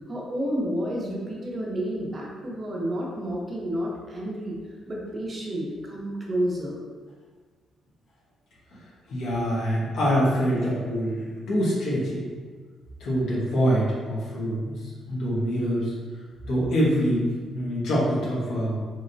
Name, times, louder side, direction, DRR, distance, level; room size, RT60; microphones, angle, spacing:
voice 1, 0.1-4.6 4.9-6.8, equal, 35° right, -3 dB, 0.8 m, -30 dB
voice 2, 9.1-12.3 13.0-14.7 15.1-15.9 16.4-17.2 17.5-18.8, equal, 75° left, -7 dB, 1.1 m, -25 dB
3.1 x 2.8 x 2.6 m, 1.5 s
cardioid pair, 90°, 0 cm